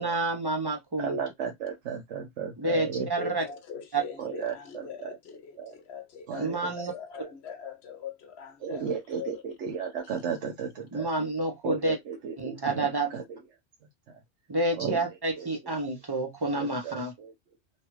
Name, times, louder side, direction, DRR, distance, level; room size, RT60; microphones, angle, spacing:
voice 1, 0.0-1.2 2.6-3.4 3.9-4.0 6.4-6.9 10.9-12.0 12.4-13.1 14.5-17.1, right 2 dB, 30° right, 0.4 m, -29 dB
voice 2, 1.0-3.3 4.2-5.1 5.6-5.7 6.3-6.9 7.2-7.3 8.6-11.1 11.6-13.4 14.1-14.2 14.7-15.1 15.4-15.5 16.6-17.3, right 7 dB, 80° right, 1.0 m, -35 dB
voice 3, 3.2-9.4, left 6 dB, 70° left, 0.9 m, -42 dB
3.1 x 2.3 x 2.9 m
omnidirectional pair, 1.2 m